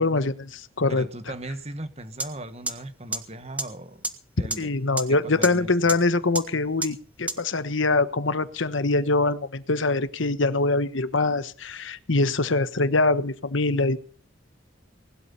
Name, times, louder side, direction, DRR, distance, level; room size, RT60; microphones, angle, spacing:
voice 1, 0.0-1.1 4.6-14.0, left 3 dB, 75° left, 1.2 m, -24 dB
voice 2, 0.9-4.0 4.4-4.7 5.1-6.0, right 1 dB, 30° right, 1.6 m, -38 dB
sound 1, 2.2-2.3 2.7-2.8 3.1-3.2 3.6-3.7 4.0-4.1 4.5-4.6 5.0-5.1 5.4-5.5 5.9-6.0 6.3-6.4 6.8-6.9 7.3-7.4, right 2 dB, 5° right, 1.7 m, -26 dB
20.0 x 12.5 x 5.6 m
head